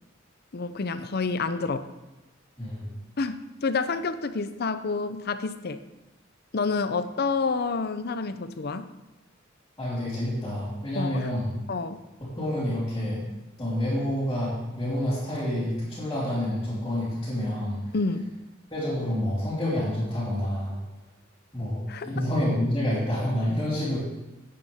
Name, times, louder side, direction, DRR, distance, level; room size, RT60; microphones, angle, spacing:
voice 1, 0.5-1.9 3.2-5.8 6.5-8.9 11.0-11.3 11.7-12.0 17.9-18.3 21.9-22.1, left 4 dB, 50° left, 11 dB, 0.6 m, -28 dB
voice 2, 2.6-2.9 9.8-11.5 12.2-13.2 13.6-17.8 18.7-20.8 21.5-24.0, left 1 dB, 15° left, -14 dB, 4.1 m, -28 dB
14.5 x 8.7 x 3.6 m, 1.0 s
head